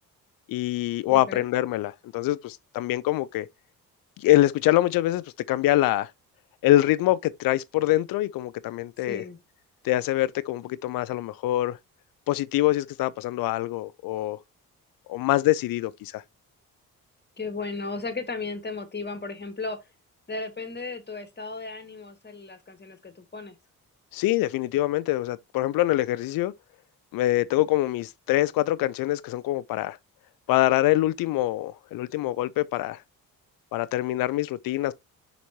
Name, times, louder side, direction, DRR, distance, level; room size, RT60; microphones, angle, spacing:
voice 1, 0.5-3.5 4.2-6.1 6.6-9.2 9.8-11.8 12.3-14.4 15.1-16.2 24.1-26.5 27.1-30.0 30.5-33.0 33.7-34.9, left 15 dB, 50° left, 0.6 m, -24 dB
voice 2, 1.1-1.5 9.1-9.4 17.4-19.8 20.3-23.6, left 3 dB, 20° left, 1.8 m, -35 dB
6.9 x 5.3 x 2.9 m
figure-of-eight pair, 40°, 46 cm